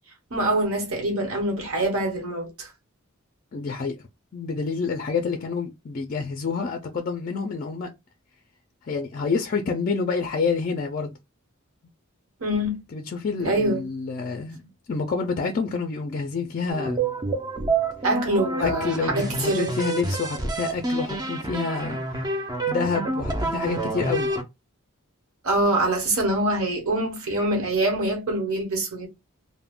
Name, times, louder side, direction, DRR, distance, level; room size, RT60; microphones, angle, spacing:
voice 1, 0.3-2.7 12.4-12.8 13.4-13.8 18.0-19.7 25.4-29.1, right 1 dB, 70° right, 1.0 m, -24 dB
voice 2, 3.5-4.0 4.3-7.9 8.8-11.2 12.9-17.0 18.6-22.3 22.7-24.3, left 4 dB, 40° left, 0.4 m, -28 dB
sound 1, 16.7-24.4, right 3 dB, 20° right, 0.4 m, -28 dB
2.3 x 2.1 x 3.5 m
head